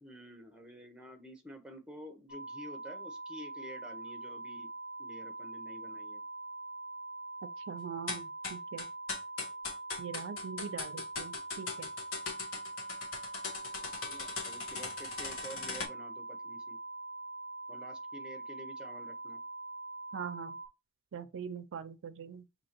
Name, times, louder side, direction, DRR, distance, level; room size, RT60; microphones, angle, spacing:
voice 1, 0.0-4.7 5.0-6.2 13.8-16.8 17.7-19.4, equal, 5° right, 0.7 m, -50 dB
sound 1, 2.3-20.7, right 2 dB, 15° left, 1.0 m, -44 dB
voice 2, 7.7-8.9 10.0-11.9 20.1-20.6 21.1-22.4, right 7 dB, 60° right, 0.4 m, -42 dB
sound 2, 8.1-15.9, left 4 dB, 65° left, 1.2 m, -39 dB
6.1 x 2.8 x 2.9 m
head